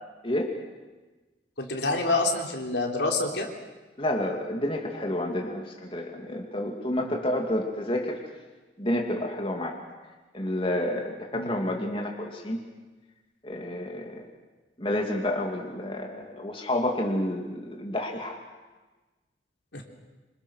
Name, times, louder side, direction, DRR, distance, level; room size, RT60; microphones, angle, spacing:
voice 1, 1.6-3.5 7.0-7.1 11.3-11.5 19.7-19.8, left 2 dB, 75° left, 1 dB, 3.6 m, -27 dB
voice 2, 4.0-8.2 8.8-9.7 10.3-12.6 13.4-14.2 14.8-18.4, left 1 dB, 30° left, 1 dB, 2.5 m, -29 dB
27.0 x 26.5 x 6.4 m, 1.2 s
head